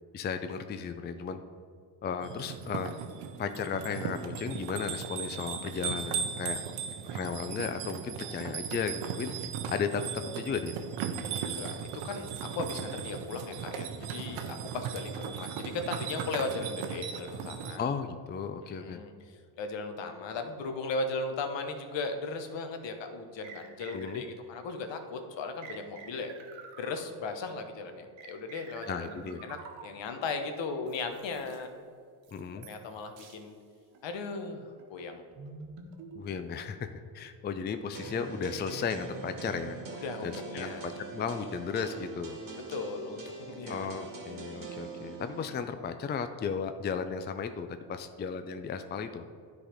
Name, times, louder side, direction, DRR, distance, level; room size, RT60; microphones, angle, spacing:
voice 1, 0.1-1.4 2.0-3.0 3.4-6.6 7.0-9.3 9.7-10.7 17.8-19.0 23.9-24.2 28.9-29.4 32.3-32.7 36.1-36.9 37.1-39.8 40.2-42.4 43.7-49.2, left 6 dB, 25° left, 9 dB, 0.4 m, -35 dB
sound 1, 2.2-17.8, right 7 dB, 90° right, 0.8 m, -37 dB
voice 2, 11.2-17.8 18.8-26.3 26.8-29.6 29.8-31.7 32.7-33.5 34.0-35.2 40.0-40.9 42.7-43.9, left 3 dB, 65° left, 6 dB, 1.1 m, -37 dB
sound 2, 22.4-22.5 23.4-24.5 25.6-27.4 28.2-30.2 30.9-31.6 32.2-32.9 33.2-33.4 33.9-34.1 34.8-36.7, right 4 dB, 70° right, 1.2 m, -49 dB
sound 3, 37.9-45.6, right 4 dB, 45° right, 1.8 m, -43 dB
10.0 x 4.2 x 5.0 m, 2.2 s
supercardioid pair, 80°, 47 cm